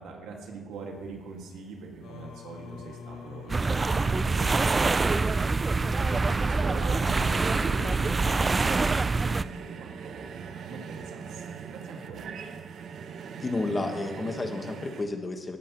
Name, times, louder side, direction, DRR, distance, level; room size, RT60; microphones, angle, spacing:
voice 1, 0.0-12.2, right 4 dB, 85° right, 0 dB, 2.2 m, -43 dB
sound 1, 0.7-15.0, right 6 dB, 65° right, 0.9 m, -44 dB
Singing, 2.0-9.4, left 7 dB, 80° left, 0.7 m, -46 dB
sound 2, 3.5-9.4, right 3 dB, 30° right, 0.4 m, -25 dB
voice 2, 13.4-15.6, left 2 dB, 25° left, 5 dB, 1.5 m, -31 dB
17.5 x 10.0 x 3.2 m, 1.3 s
cardioid pair, 90°, 0 cm